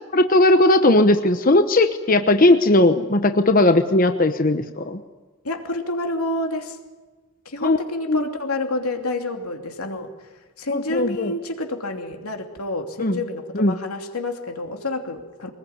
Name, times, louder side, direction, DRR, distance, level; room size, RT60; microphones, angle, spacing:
voice 1, 0.1-5.0 7.6-7.8 8.1-8.3 10.7-11.3 13.0-13.2 13.5-13.8, left 2 dB, 40° left, 8 dB, 1.0 m, -17 dB
voice 2, 5.4-6.8 7.4-10.1 10.6-15.5, left 2 dB, 85° left, 4 dB, 2.9 m, -28 dB
24.0 x 20.0 x 9.5 m, 1.3 s
head